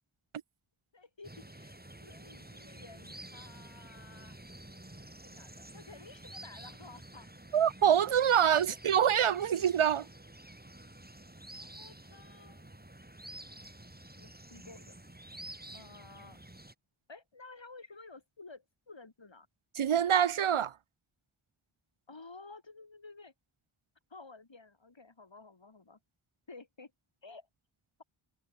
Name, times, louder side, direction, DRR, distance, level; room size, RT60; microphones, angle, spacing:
voice 1, 0.9-4.4 5.2-7.3 8.6-8.8 11.5-12.6 14.0-14.9 15.7-16.4 17.1-19.5 22.1-23.3 24.1-26.0 26.5-26.9 27.2-27.5, left 3 dB, 65° left, 5.7 m, -53 dB
sound 1, 1.2-16.7, right 1 dB, 20° right, 4.3 m, -50 dB
voice 2, 7.5-10.1 19.8-20.7, right 9 dB, 80° right, 0.8 m, -25 dB
wide cardioid pair, 45°, 49 cm